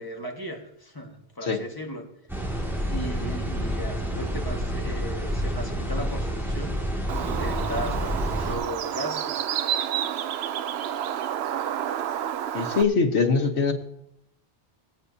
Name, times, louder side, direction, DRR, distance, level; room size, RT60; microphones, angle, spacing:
voice 1, 0.0-2.1 2.8-9.4, equal, 20° left, 1 dB, 1.6 m, -37 dB
sound 1, 2.3-8.6, equal, ahead, 2.1 m, -29 dB
Bird, 7.1-12.8, right 10 dB, 80° right, 0.8 m, -29 dB
voice 2, 12.5-13.7, left 4 dB, 90° left, 5 dB, 1.5 m, -22 dB
23.5 x 8.4 x 2.7 m, 0.79 s
omnidirectional pair, 1.1 m